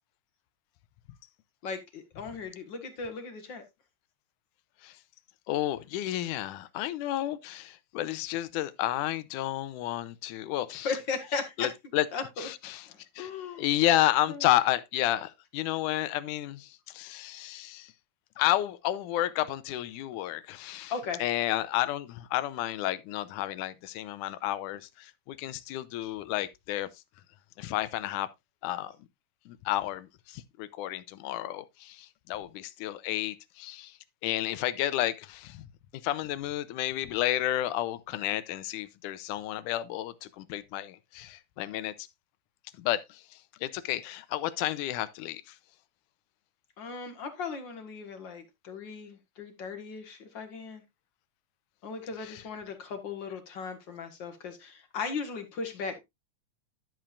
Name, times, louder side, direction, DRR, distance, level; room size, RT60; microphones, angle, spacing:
voice 1, 1.6-3.6 10.7-11.7 12.1-12.5 12.9-13.7 14.3-14.5 20.9-21.2 46.8-50.8 51.8-56.0, left 5 dB, 45° left, 1.7 m, -37 dB
voice 2, 5.5-10.9 11.6-12.1 12.4-12.9 13.2-13.3 13.6-17.9 18.4-20.9 21.2-26.9 27.6-28.3 28.6-28.9 29.5-35.7 36.0-42.1 42.8-45.6 52.2-52.4, left 14 dB, 90° left, 2.2 m, -31 dB
11.5 x 7.5 x 2.5 m
omnidirectional pair, 3.5 m